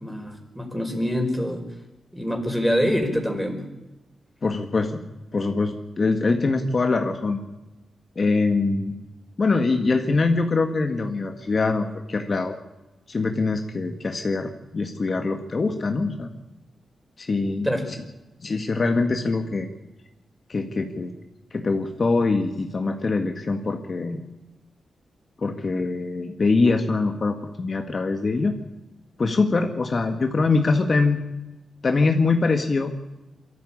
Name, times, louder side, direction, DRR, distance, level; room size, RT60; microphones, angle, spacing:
voice 1, 0.0-1.6 2.1-3.6 17.6-17.8, equal, 5° right, 4 dB, 5.0 m, -25 dB
voice 2, 4.4-5.0 5.3-7.4 8.2-8.9 9.4-12.6 13.1-16.3 17.2-17.7 18.4-19.7 20.5-21.1 21.5-24.3 25.4-28.5 29.2-31.2 31.8-32.9, left 3 dB, 45° left, 5 dB, 1.9 m, -23 dB
23.0 x 14.0 x 8.8 m, 1.0 s
cardioid pair, 90°, 0 cm